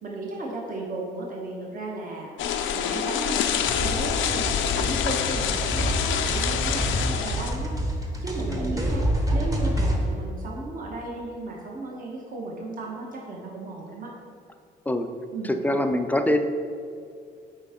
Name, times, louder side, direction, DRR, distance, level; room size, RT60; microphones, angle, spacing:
voice 1, 0.0-2.3 2.7-7.8 8.2-9.1 9.3-14.1 15.3-15.5, right 2 dB, 45° right, -2 dB, 1.3 m, -35 dB
sound 1, 2.4-7.5, left 8 dB, 75° left, 0.5 m, -26 dB
sound 2, 3.7-10.0, equal, 15° right, 1.1 m, -27 dB
voice 2, 8.5-8.8 14.9-15.1 15.4-16.4, left 1 dB, 10° left, 7 dB, 0.4 m, -24 dB
8.1 x 4.5 x 3.7 m, 2.4 s
cardioid pair, 90°, 20 cm